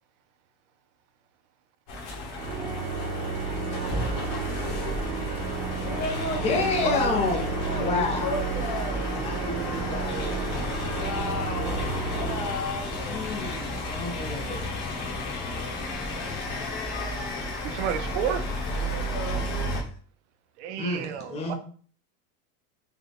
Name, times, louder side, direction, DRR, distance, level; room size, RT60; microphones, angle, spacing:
sound 1, 1.9-19.8, left 1 dB, 40° left, 1.0 m, -32 dB
Organ, 2.3-13.1, right 4 dB, 75° right, 1.0 m, -33 dB
voice 1, 5.8-9.0 10.8-13.2 18.8-19.8, left 3 dB, 70° left, 1.0 m, -34 dB
voice 2, 6.4-8.4 9.1-10.4 13.0-14.6 20.8-21.5, left 3 dB, 15° left, 0.5 m, -30 dB
voice 3, 17.6-18.4 20.6-21.5, right 8 dB, 55° right, 0.5 m, -31 dB
3.4 x 2.2 x 4.0 m
supercardioid pair, 155°, 43 cm